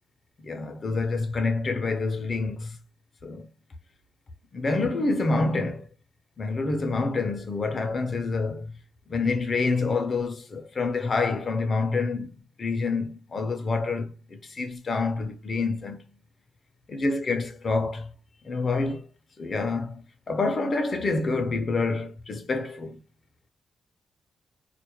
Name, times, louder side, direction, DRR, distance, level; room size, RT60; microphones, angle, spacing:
voice 1, 0.4-2.8 3.2-3.5 4.5-5.9 6.4-8.8 9.1-12.3 12.6-16.0 16.9-18.1 18.4-19.1 19.4-23.0, left 3 dB, 35° left, 0.4 m, -27 dB
2.2 x 2.0 x 2.7 m
wide cardioid pair, 160°, 0 cm